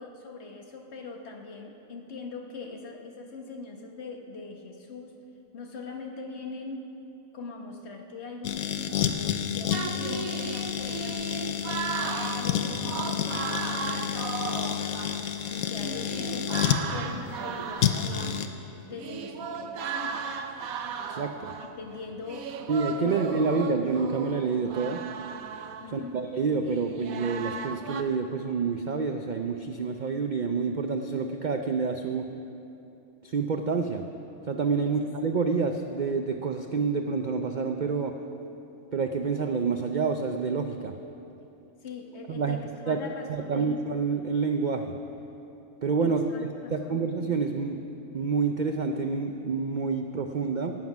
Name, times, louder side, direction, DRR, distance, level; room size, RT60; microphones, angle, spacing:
voice 1, 0.0-5.2 5.5-6.9 7.3-8.8 9.0-12.8 13.0-18.4 18.8-20.3 21.6-22.5 23.0-23.5 25.8-26.2 34.8-35.0 41.8-43.8 46.0-47.0, left 4 dB, 50° left, 2 dB, 1.4 m, -42 dB
sound 1, 8.4-16.8 17.8-18.5, left 9 dB, 85° left, 1.1 m, -29 dB
sound 2, 9.7-15.3 15.5-28.0, right 6 dB, 85° right, 1.2 m, -36 dB
voice 2, 21.1-21.5 22.7-25.0 25.9-32.3 33.2-34.0 34.5-38.2 38.9-40.9 42.3-42.6 42.9-44.9 45.8-47.8 48.1-50.8, right 4 dB, 65° right, 5 dB, 0.4 m, -28 dB
18.0 x 7.6 x 6.0 m, 2.9 s
omnidirectional pair, 1.5 m